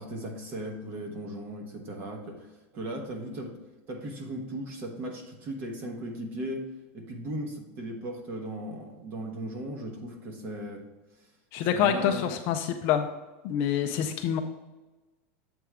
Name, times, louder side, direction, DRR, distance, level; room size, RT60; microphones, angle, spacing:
voice 1, 0.0-3.6 3.9-6.7 6.9-10.8 11.7-12.3, right 1 dB, 30° right, 2 dB, 1.0 m, -37 dB
voice 2, 11.5-13.1 13.4-14.4, left 9 dB, 35° left, 6 dB, 0.4 m, -26 dB
7.7 x 3.4 x 4.8 m, 1.2 s
supercardioid pair, 175°, 7 cm